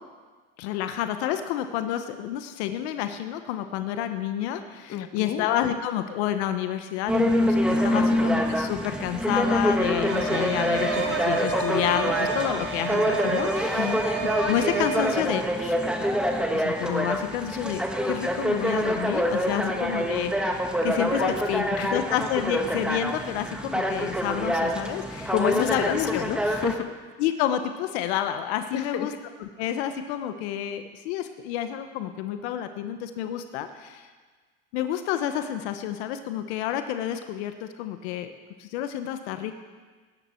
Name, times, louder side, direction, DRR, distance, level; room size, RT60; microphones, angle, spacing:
voice 1, 0.6-14.0 14.4-15.7 16.5-21.2 21.9-26.2 27.2-29.1 29.4-34.1 34.7-38.3 38.6-39.5, left 10 dB, 75° left, 9 dB, 1.0 m, -29 dB
voice 2, 4.9-5.5 7.9-8.1 13.8-14.0 19.6-19.8 21.2-22.0 25.3-26.9 28.7-29.1, left 10 dB, 45° left, 9 dB, 1.1 m, -30 dB
sound 1, 7.1-26.7, equal, 5° right, 1.5 m, -26 dB
sound 2, 10.1-15.1, right 5 dB, 85° right, 1.9 m, -31 dB
18.5 x 10.5 x 4.5 m, 1.4 s
supercardioid pair, 100°, 33 cm